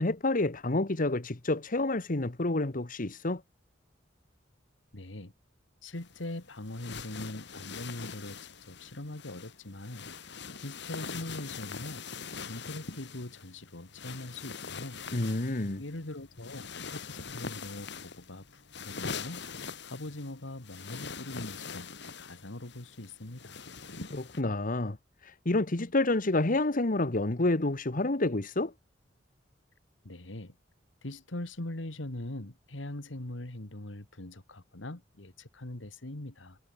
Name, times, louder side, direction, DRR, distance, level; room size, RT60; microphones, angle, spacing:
voice 1, 0.0-3.4 15.1-15.8 24.1-25.0 25.2-28.7, left 2 dB, 45° left, 1.4 m, -29 dB
voice 2, 4.9-5.3 5.8-12.1 12.5-15.0 15.8-19.4 19.8-21.9 22.2-23.7 30.0-30.5 31.0-36.6, left 1 dB, 85° left, 2.1 m, -42 dB
sound 1, 6.0-24.4, left 5 dB, 65° left, 3.1 m, -43 dB
head